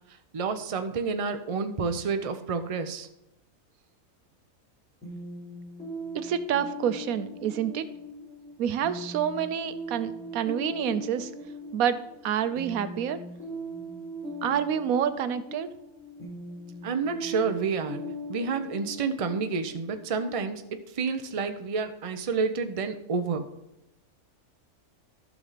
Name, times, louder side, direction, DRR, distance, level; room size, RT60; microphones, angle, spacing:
voice 1, 0.3-3.1 16.8-18.0 18.3-23.5, right 5 dB, 35° right, 8 dB, 0.6 m, -29 dB
sound 1, 5.0-20.6, equal, 10° left, 4.0 m, -40 dB
voice 2, 6.1-7.9 8.6-11.3 11.7-12.0 12.2-13.2 14.4-15.7, right 9 dB, 80° right, 12 dB, 1.1 m, -28 dB
12.0 x 6.2 x 4.1 m, 0.87 s
omnidirectional pair, 1.5 m